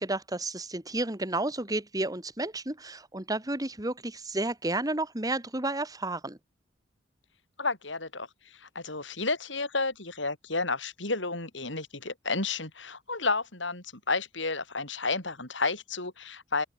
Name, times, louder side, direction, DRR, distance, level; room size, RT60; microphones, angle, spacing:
voice 1, 0.0-6.4, right 2 dB, 20° right, 2.5 m, -31 dB
voice 2, 7.6-8.3 8.6-16.6, left 3 dB, 75° left, 8.0 m, -31 dB
open air
head